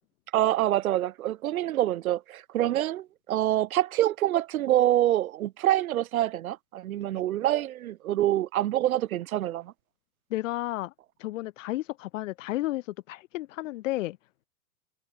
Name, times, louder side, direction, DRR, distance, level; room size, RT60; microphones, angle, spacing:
voice 1, 0.3-9.7, right 13 dB, 60° right, 7.0 m, -26 dB
voice 2, 10.3-10.9 11.2-14.2, left 17 dB, 55° left, 4.9 m, -32 dB
hypercardioid pair, 145°, 47 cm